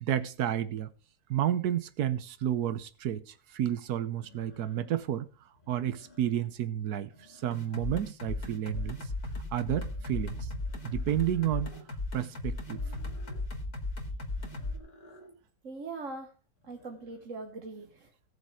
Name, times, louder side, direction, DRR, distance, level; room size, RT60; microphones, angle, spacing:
voice 1, 0.0-0.9 1.3-5.3 5.7-9.0 9.5-10.5 10.8-11.7 12.1-12.8, right 11 dB, 90° right, 1.4 m, -31 dB
sound 1, 2.8-2.9 4.2-5.1 5.5-6.6 6.9-7.9 8.2-9.2 9.8-11.9 12.6-13.5 14.3-15.4 16.6-17.3, left 1 dB, 30° left, 3.0 m, -57 dB
sound 2, 7.5-14.8, left 2 dB, 75° left, 3.0 m, -36 dB
voice 2, 15.6-16.3 16.6-18.3, right 3 dB, 55° right, 1.7 m, -41 dB
17.5 x 6.8 x 4.8 m
omnidirectional pair, 1.6 m